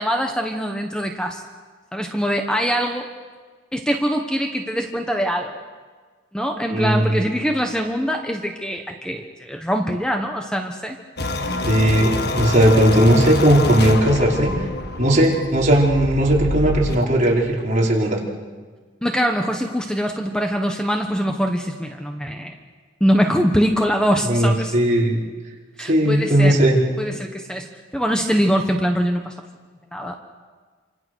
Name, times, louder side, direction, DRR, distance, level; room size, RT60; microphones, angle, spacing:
voice 1, 0.0-1.4 1.9-3.1 3.7-5.6 6.3-11.0 19.0-22.6 23.0-24.7 25.8-26.6 27.0-29.3 29.9-30.1, equal, 5° left, 3 dB, 1.3 m, -23 dB
voice 2, 6.7-7.2 11.7-14.5 15.0-18.2 24.2-25.2 25.8-26.8, right 1 dB, 45° right, -3 dB, 5.2 m, -17 dB
sound 1, 11.2-17.1, left 2 dB, 60° left, 1.6 m, -26 dB
27.5 x 26.0 x 6.5 m, 1.5 s
head